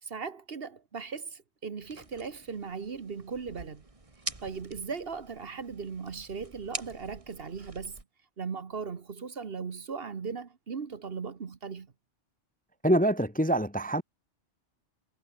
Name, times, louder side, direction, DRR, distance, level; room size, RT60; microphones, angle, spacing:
voice 1, 0.0-3.9 4.4-8.0 8.4-11.9, right 5 dB, 50° right, 1.4 m, -38 dB
Branches being snapped, 1.8-8.0, right 2 dB, 25° right, 2.0 m, -45 dB
voice 2, 12.8-14.0, right 1 dB, 10° left, 0.9 m, -25 dB
omnidirectional pair, 1.3 m